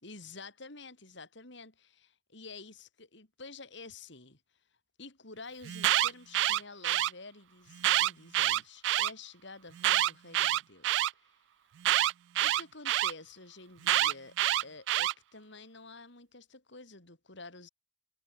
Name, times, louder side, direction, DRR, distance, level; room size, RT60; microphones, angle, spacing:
voice 1, 0.0-4.4 5.0-11.4 12.4-17.7, left 3 dB, 65° left, 4.9 m, -49 dB
Alarm, 5.6-7.1 7.8-9.1 9.8-11.1 11.8-13.1 13.8-15.1, right 13 dB, 65° right, 0.3 m, -27 dB
head